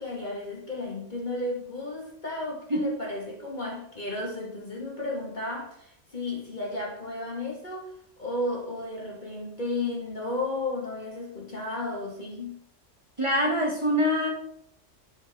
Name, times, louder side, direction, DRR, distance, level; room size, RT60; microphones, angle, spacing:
voice 1, 0.0-12.6, left 2 dB, 35° left, -2 dB, 2.2 m, -33 dB
voice 2, 13.2-14.3, equal, 25° right, -2 dB, 1.7 m, -24 dB
11.0 x 5.1 x 4.4 m, 0.68 s
omnidirectional pair, 1.3 m